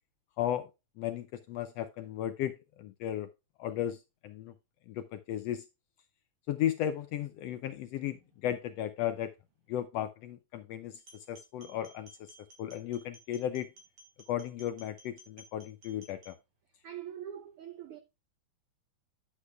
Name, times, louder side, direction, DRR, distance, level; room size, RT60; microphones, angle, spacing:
voice 1, 0.4-0.7 1.0-3.3 3.6-4.5 4.9-5.6 6.5-9.3 9.7-13.7 14.3-16.4, left 11 dB, 80° left, 1.5 m, -35 dB
sound 1, 11.0-16.3, equal, 55° right, 2.9 m, -57 dB
voice 2, 16.8-18.0, right 10 dB, 80° right, 1.2 m, -43 dB
10.0 x 8.2 x 2.3 m
omnidirectional pair, 3.4 m